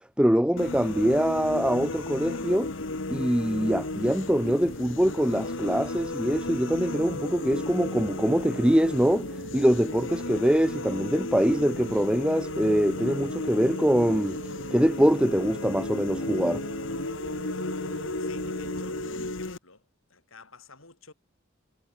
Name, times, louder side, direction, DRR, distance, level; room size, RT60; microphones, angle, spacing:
voice 1, 0.2-2.7 3.1-9.3 9.5-14.4 14.7-16.6, equal, 5° right, 1.0 m, -24 dB
sound 1, 0.6-19.6, left 2 dB, 65° left, 1.5 m, -34 dB
sound 2, 2.4-19.3, right 2 dB, 70° right, 1.8 m, -43 dB
voice 2, 18.2-19.8 20.1-21.1, left 4 dB, 90° left, 6.4 m, -51 dB
head